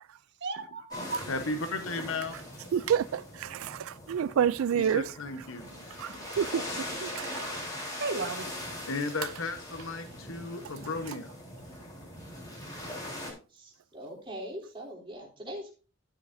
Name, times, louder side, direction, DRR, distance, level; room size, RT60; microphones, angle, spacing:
voice 1, 0.4-1.2 5.6-6.3 7.2-8.6, right 3 dB, 55° right, 1.4 m, -37 dB
sound 1, 0.9-13.3, left 1 dB, 20° left, 3.7 m, -41 dB
voice 2, 1.3-2.3 4.8-5.7 8.9-11.3, left 3 dB, 80° left, 1.1 m, -34 dB
voice 3, 2.7-5.1 6.0-6.6 7.0-7.5, right 8 dB, 85° right, 0.3 m, -29 dB
voice 4, 13.5-15.7, equal, 25° right, 3.3 m, -42 dB
13.0 x 7.9 x 2.7 m
head